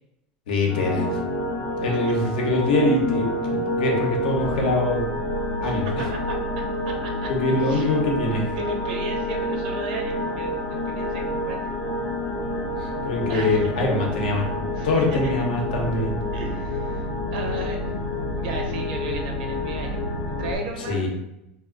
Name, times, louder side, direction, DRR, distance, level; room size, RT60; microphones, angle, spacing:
voice 1, 0.5-1.1 1.8-5.1 5.6-6.1 7.3-8.5 13.0-14.5 14.8-16.2 20.9-21.1, left 2 dB, 90° left, 0 dB, 0.7 m, -23 dB
sound 1, 0.7-20.5, left 1 dB, 55° left, 0.6 m, -28 dB
voice 2, 5.6-6.4 6.8-8.0 8.3-11.7 13.3-13.7 14.8-15.3 16.3-17.8 18.4-21.1, right 3 dB, 85° right, 2 dB, 0.7 m, -35 dB
2.3 x 2.1 x 3.7 m, 0.85 s
supercardioid pair, 115°, 5 cm